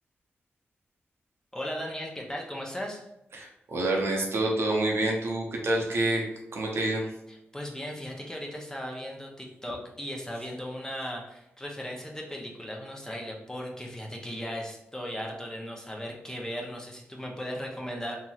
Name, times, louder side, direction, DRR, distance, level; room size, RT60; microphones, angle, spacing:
voice 1, 1.5-3.0 7.3-18.2, equal, 15° left, -1 dB, 0.6 m, -37 dB
voice 2, 3.3-6.2 6.5-7.1, right 2 dB, 65° right, -1 dB, 0.7 m, -27 dB
2.9 x 2.8 x 2.4 m, 0.85 s
cardioid pair, 75°, 5 cm